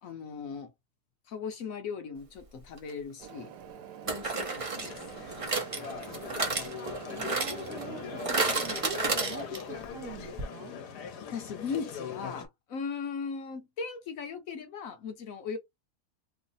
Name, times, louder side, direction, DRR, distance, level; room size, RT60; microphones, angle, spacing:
voice 1, 0.0-0.7 1.3-3.5 4.0-4.9 11.3-15.6, left 5 dB, 60° left, 1.1 m, -38 dB
sound 1, 2.8-2.9 4.1-9.8 10.1-10.2 10.4-10.5, right 3 dB, 35° right, 0.5 m, -32 dB
sound 2, 3.2-8.9, right 9 dB, 90° right, 1.2 m, -47 dB
sound 3, 4.8-12.5, left 7 dB, 90° left, 1.3 m, -41 dB
voice 2, 7.0-10.7, right 8 dB, 70° right, 0.8 m, -44 dB
3.2 x 2.0 x 3.9 m
omnidirectional pair, 1.7 m